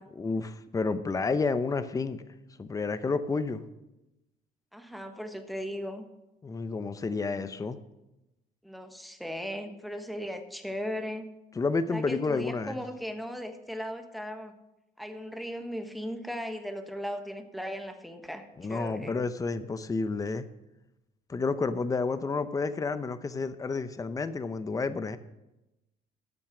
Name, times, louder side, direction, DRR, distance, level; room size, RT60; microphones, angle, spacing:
voice 1, 0.2-2.2 2.6-3.6 6.4-7.8 11.6-12.8 18.6-20.5 21.3-25.2, left 4 dB, 20° left, 12 dB, 0.7 m, -30 dB
voice 2, 4.7-6.0 8.6-11.3 11.9-14.6 15.0-19.2, equal, ahead, 6 dB, 1.3 m, -37 dB
13.0 x 7.4 x 6.1 m, 0.95 s
cardioid pair, 110°, 17 cm